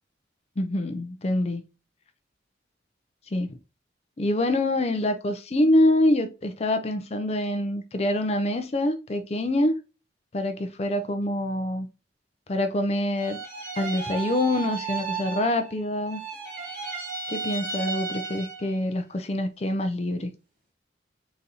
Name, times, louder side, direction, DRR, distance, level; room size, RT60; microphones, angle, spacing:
voice 1, 0.6-1.6 3.3-3.6 4.2-9.8 10.3-11.9 12.5-13.4 13.8-16.2 17.3-20.3, left 1 dB, 35° left, 0.5 m, -25 dB
sound 1, 13.1-15.8 16.0-18.8, right 5 dB, 45° right, 2.5 m, -34 dB
4.0 x 3.9 x 2.7 m
head